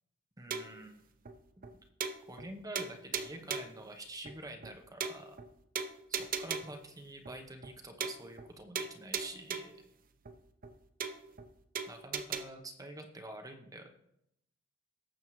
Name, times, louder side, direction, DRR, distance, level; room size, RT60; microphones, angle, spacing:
voice 1, 0.4-1.1 1.6-1.7 2.3-5.4 6.1-9.7 11.9-13.9, right 1 dB, 15° right, 4 dB, 0.9 m, -47 dB
sound 1, 0.5-0.8 1.3-1.4 1.6-1.7 2.0-2.5 2.8-3.8 4.3-4.4 4.6-4.7 5.0-5.5 5.8-6.8 7.3-7.4 7.6-7.7 8.0-8.5 8.8-9.8 10.3-10.4 10.6-10.7 11.0-11.5 11.8-12.4, right 6 dB, 40° right, 0.7 m, -38 dB
18.0 x 7.6 x 3.1 m, 0.79 s
head